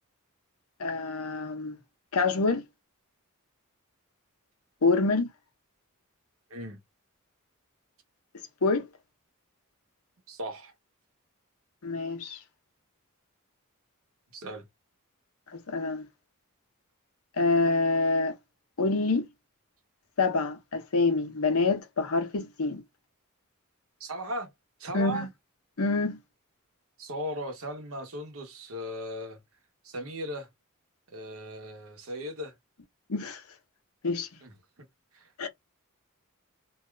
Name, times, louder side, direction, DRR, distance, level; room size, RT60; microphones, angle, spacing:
voice 1, 0.8-1.7 2.1-2.6 4.8-5.3 8.6-8.9 11.8-12.4 15.7-16.0 17.4-18.4 18.8-19.3 20.2-22.8 24.9-25.3 25.8-26.2 33.1-33.4 34.0-34.3 35.4-35.5, left 3 dB, 90° left, 0.8 m, -26 dB
voice 2, 10.3-10.7 14.3-14.6 24.0-24.5 24.8-25.3 27.0-29.4 29.8-30.5 31.1-32.5 34.4-34.5 35.1-35.3, equal, 70° right, 1.0 m, -37 dB
2.7 x 2.4 x 3.2 m
head